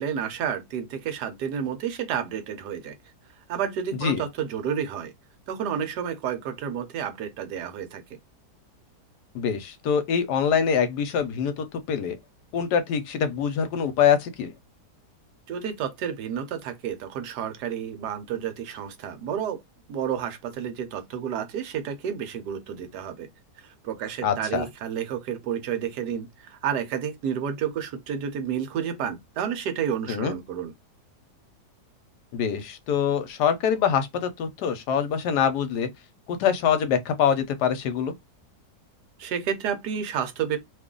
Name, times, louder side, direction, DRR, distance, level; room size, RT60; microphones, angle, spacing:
voice 1, 0.0-2.9 3.5-5.1 5.5-8.2 15.5-19.6 19.9-23.3 23.6-30.7 39.2-40.6, right 8 dB, 75° right, 1.3 m, -30 dB
voice 2, 9.3-12.2 12.5-14.5 24.2-24.7 30.1-30.4 32.3-35.9 36.3-38.1, left 7 dB, 75° left, 1.2 m, -24 dB
3.0 x 2.4 x 3.7 m
omnidirectional pair, 1.8 m